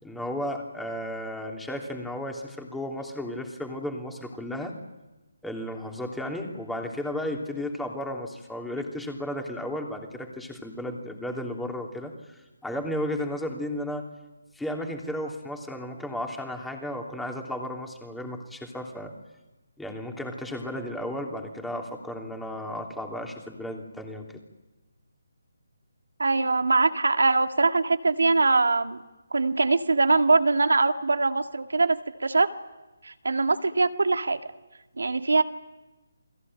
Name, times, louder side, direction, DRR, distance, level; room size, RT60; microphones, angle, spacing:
voice 1, 0.0-4.7 5.4-14.1 14.5-19.1 19.8-24.3, left 1 dB, 5° left, 2 dB, 3.1 m, -34 dB
voice 2, 26.2-29.0 29.3-32.5 33.0-34.4 35.0-35.4, right 3 dB, 80° right, 7 dB, 1.9 m, -22 dB
29.5 x 21.0 x 8.9 m, 1.1 s
figure-of-eight pair, 155°, 0 cm